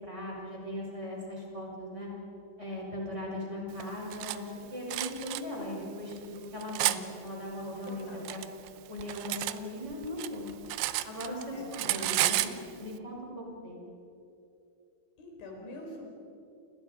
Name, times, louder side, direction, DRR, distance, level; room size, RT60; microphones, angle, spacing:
voice 1, 0.0-2.1 2.6-8.4 8.9-10.5 11.0-13.9, left 1 dB, 15° right, -3 dB, 5.8 m, -39 dB
Cutlery silverware, 3.8-4.4 4.9-5.4 6.1-7.0 7.9-9.6 9.9-11.4 11.7-12.6, right 16 dB, 80° right, 2.9 m, -31 dB
voice 2, 7.8-8.3 11.5-12.5 15.2-16.1, left 1 dB, 80° left, 0 dB, 7.0 m, -46 dB
29.5 x 28.0 x 5.1 m, 2.7 s
omnidirectional pair, 5.3 m